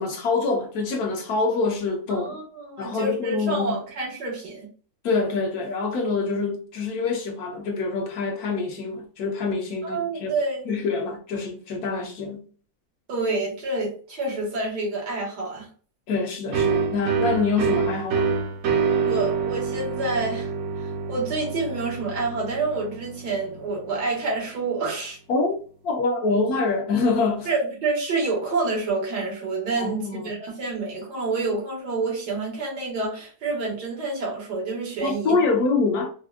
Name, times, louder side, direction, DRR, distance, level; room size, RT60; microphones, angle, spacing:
voice 1, 0.0-2.4 2.8-3.8 5.0-10.3 10.7-12.5 16.1-18.3 25.3-25.5 25.8-27.5 29.8-30.3 35.0-36.1, left 4 dB, 70° left, 1.3 m, -25 dB
voice 2, 2.1-4.7 9.8-10.7 13.1-15.7 19.0-20.5 20.8-25.2 27.5-35.4, right 3 dB, 85° right, 2.0 m, -28 dB
sound 1, 16.5-24.0, right 5 dB, 65° right, 1.1 m, -26 dB
4.5 x 2.1 x 2.4 m
omnidirectional pair, 1.7 m